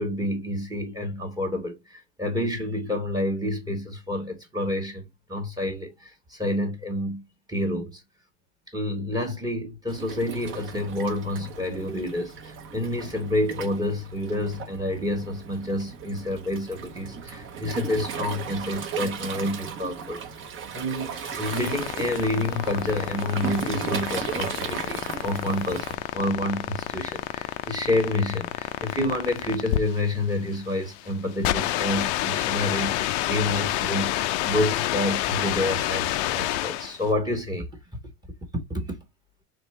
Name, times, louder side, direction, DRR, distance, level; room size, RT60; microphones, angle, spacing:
voice 1, 0.0-8.0 8.7-20.2 20.7-34.1 34.4-37.7 38.5-39.0, left 1 dB, 10° right, 1.1 m, -29 dB
Waves surf, 9.9-26.0, right 7 dB, 35° right, 0.8 m, -36 dB
sound 1, 21.1-37.0, left 14 dB, 65° left, 0.5 m, -29 dB
4.4 x 3.3 x 3.1 m
supercardioid pair, 140°, 36 cm